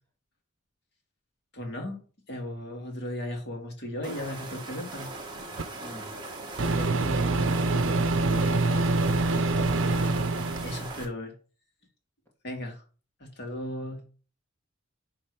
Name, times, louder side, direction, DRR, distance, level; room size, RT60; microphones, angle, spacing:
voice 1, 1.5-2.0 2.3-5.1 10.6-11.4 12.4-12.8 13.2-14.1, left 1 dB, 55° left, 2.1 m, -36 dB
sound 1, 4.0-11.0, right 3 dB, 20° right, 1.6 m, -40 dB
Microwave oven, 5.6-5.7 6.6-10.8, right 2 dB, 70° right, 0.7 m, -25 dB
voice 2, 5.8-6.2 6.6-8.5 9.2-9.8, left 1 dB, 10° left, 2.1 m, -43 dB
10.5 x 3.5 x 4.8 m
head